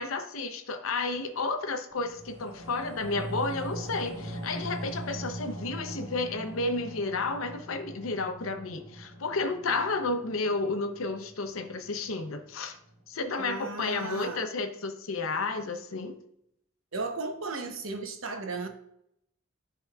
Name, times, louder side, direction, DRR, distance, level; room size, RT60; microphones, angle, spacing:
voice 1, 0.0-12.8 13.1-16.2, left 3 dB, 85° left, 0.7 m, -32 dB
sound 1, 1.9-12.5 12.9-13.0, right 1 dB, 60° right, 1.4 m, -41 dB
voice 2, 13.4-14.4 16.9-18.7, right 3 dB, 80° right, 0.9 m, -35 dB
10.5 x 3.8 x 2.4 m
head